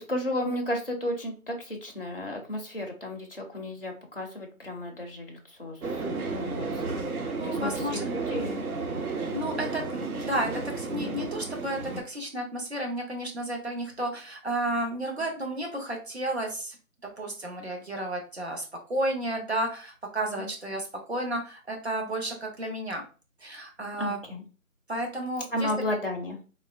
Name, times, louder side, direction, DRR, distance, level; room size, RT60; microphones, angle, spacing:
voice 1, 0.0-7.0 7.4-8.6 15.2-15.3 20.4-20.5 24.0-24.4 25.5-26.4, left 1 dB, 40° left, 0 dB, 0.5 m, -33 dB
sound 1, 5.8-12.0, right 3 dB, 80° right, 0.8 m, -33 dB
voice 2, 7.3-8.0 9.3-16.8 17.2-23.0 23.4-24.2 24.9-25.7, right 1 dB, 50° right, 2 dB, 0.8 m, -32 dB
3.4 x 2.0 x 2.4 m, 0.35 s
figure-of-eight pair, 175°, 43 cm